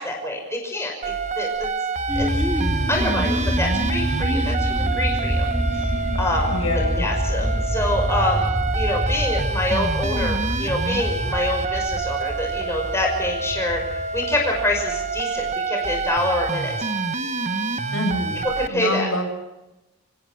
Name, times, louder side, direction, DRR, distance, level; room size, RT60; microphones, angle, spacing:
voice 1, 0.0-1.7 2.2-2.3 2.9-5.5 5.7-5.9 6.2-6.6 7.0-8.4 8.7-13.8 14.1-16.7 18.5-19.1, left 1 dB, 10° left, 1 dB, 5.8 m, -26 dB
sound 1, 1.0-18.7, right 4 dB, 35° right, 1.0 m, -27 dB
sound 2, 2.1-15.0, equal, 5° right, 3.3 m, -26 dB
voice 2, 6.5-7.1 17.9-19.3, left 1 dB, 75° left, 4 dB, 7.0 m, -26 dB
28.5 x 17.0 x 6.4 m, 0.97 s
head